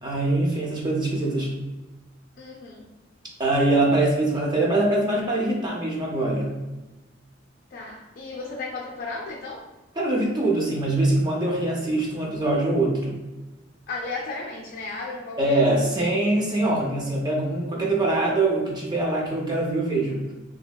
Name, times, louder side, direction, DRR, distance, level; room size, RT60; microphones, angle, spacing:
voice 1, 0.0-1.6 3.4-6.6 10.0-13.2 15.4-20.3, right 2 dB, 20° right, -2 dB, 0.4 m, -23 dB
voice 2, 2.4-2.8 7.7-9.7 13.9-15.9, left 3 dB, 50° left, -3 dB, 0.4 m, -34 dB
2.9 x 2.7 x 2.3 m, 1.1 s
head